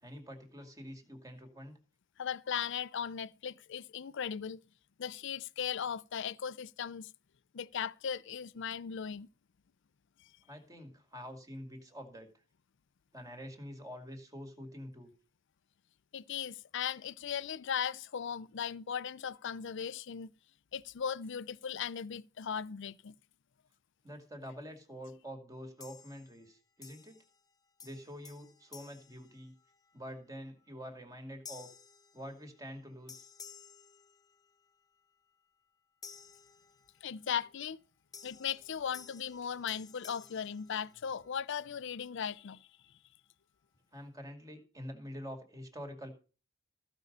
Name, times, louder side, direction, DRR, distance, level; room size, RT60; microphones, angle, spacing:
voice 1, 0.0-1.8 10.5-12.3 13.1-15.1 24.0-27.2 27.8-29.5 29.9-31.7 32.1-33.3 43.9-46.1, equal, 15° right, 2.3 m, -46 dB
voice 2, 2.2-4.6 5.0-7.1 7.5-9.3 16.1-20.3 20.7-23.1 37.0-37.8 38.2-42.7, left 7 dB, 65° left, 0.5 m, -38 dB
sound 1, 25.8-26.5 26.8-27.5 27.8-30.0 30.5-30.7 31.4-32.8 33.1-34.7 36.0-37.2 38.1-41.4, left 6 dB, 20° left, 0.7 m, -54 dB
15.0 x 5.3 x 6.7 m
head